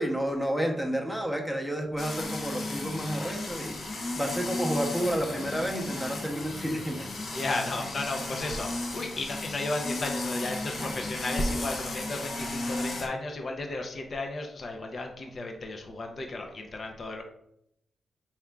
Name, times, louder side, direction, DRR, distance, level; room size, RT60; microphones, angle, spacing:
voice 1, 0.0-7.1, equal, 5° left, 2 dB, 0.8 m, -30 dB
sound 1, 2.0-13.1, left 2 dB, 65° left, 0.9 m, -35 dB
voice 2, 7.3-17.2, left 2 dB, 50° left, 2 dB, 0.6 m, -34 dB
4.3 x 3.6 x 2.3 m, 0.77 s
cardioid pair, 75°, 0 cm